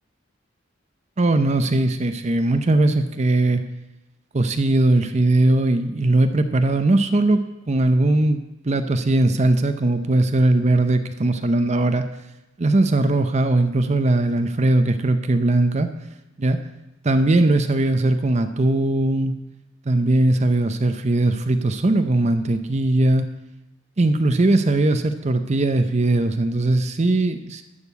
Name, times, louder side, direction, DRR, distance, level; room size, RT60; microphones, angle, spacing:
voice 1, 1.2-3.6 4.3-12.0 12.6-15.9 16.4-16.6 17.0-19.3 19.9-23.3 24.0-27.6, right 2 dB, 35° right, 9 dB, 0.6 m, -19 dB
12.5 x 6.6 x 8.1 m, 0.97 s
head